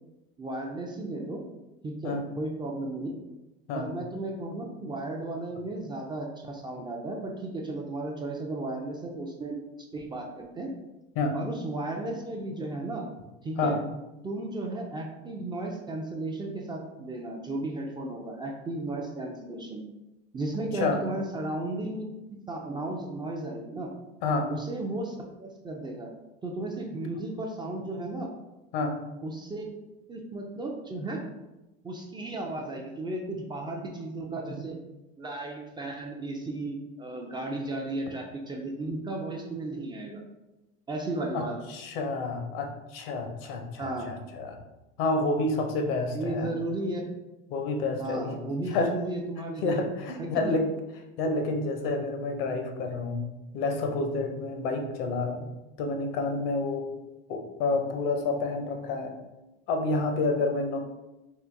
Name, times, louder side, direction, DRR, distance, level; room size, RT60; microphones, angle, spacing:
voice 1, 0.4-1.4 1.8-3.1 3.7-9.6 9.9-10.7 11.3-13.1 13.4-13.7 14.2-19.8 20.3-23.9 24.5-26.1 26.4-28.3 29.2-29.7 30.1-31.2 31.8-34.8 35.2-40.2 40.9-41.6 43.8-44.1 46.1-47.0 48.0-49.8 50.2-50.6, right 2 dB, 15° right, 1 dB, 0.3 m, -34 dB
voice 2, 41.3-44.6 45.0-46.5 47.5-48.4 48.6-48.9 49.6-50.7 51.2-53.2 53.5-55.5 55.8-56.9 57.3-59.1 59.7-60.8, left 3 dB, 75° left, 4 dB, 0.7 m, -29 dB
3.7 x 2.5 x 2.5 m, 1.0 s
supercardioid pair, 105°, 30 cm